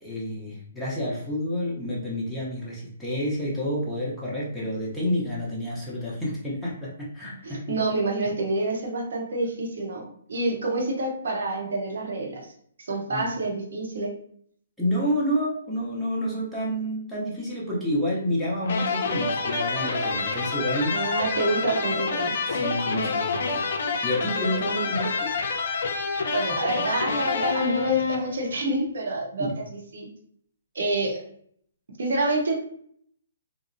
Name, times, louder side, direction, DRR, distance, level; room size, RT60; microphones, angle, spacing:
voice 1, 0.0-7.8 13.1-13.3 14.8-20.9 22.5-23.6 24.0-25.3 29.4-29.5, equal, ahead, -8 dB, 0.7 m, -29 dB
voice 2, 7.4-12.5 12.9-14.1 20.9-22.4 26.3-29.5 29.9-30.1 30.7-31.2 32.0-32.5, right 2 dB, 70° right, 0 dB, 0.8 m, -27 dB
sound 1, 18.6-28.6, left 4 dB, 60° left, 0.4 m, -28 dB
2.7 x 2.0 x 2.6 m, 0.63 s
hypercardioid pair, 150°, 0 cm